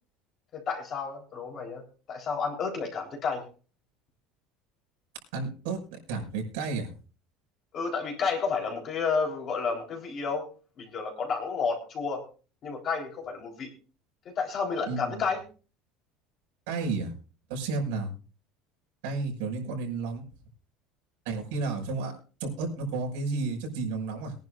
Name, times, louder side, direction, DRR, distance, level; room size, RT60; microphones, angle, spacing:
voice 1, 0.5-1.8 2.1-3.4 7.7-10.5 10.8-12.2 12.6-13.7 14.4-15.4, left 5 dB, 30° left, 0 dB, 4.0 m, -31 dB
voice 2, 5.3-5.8 6.1-6.9 14.9-15.2 16.7-17.1 17.5-18.1 19.0-20.2 21.2-22.1 22.4-24.3, right 4 dB, 85° right, 1 dB, 6.0 m, -32 dB
23.5 x 11.0 x 2.6 m, 0.37 s
cardioid pair, 175°, 0 cm